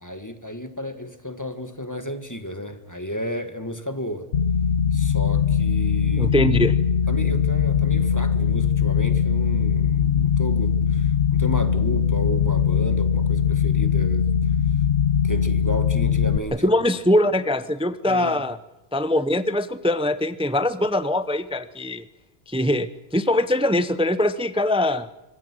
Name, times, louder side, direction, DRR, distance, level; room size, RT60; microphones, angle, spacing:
voice 1, 0.0-4.3 4.9-6.4 7.1-14.8 15.2-16.7 18.0-18.5, left 1 dB, 15° left, 8 dB, 1.7 m, -33 dB
sound 1, 4.3-16.4, left 7 dB, 85° left, 1.2 m, -21 dB
voice 2, 6.2-6.7 16.6-18.6 18.9-22.0 22.5-22.9 23.1-25.1, left 1 dB, 5° right, 13 dB, 0.7 m, -22 dB
25.5 x 22.5 x 6.2 m, 1.0 s
omnidirectional pair, 1.1 m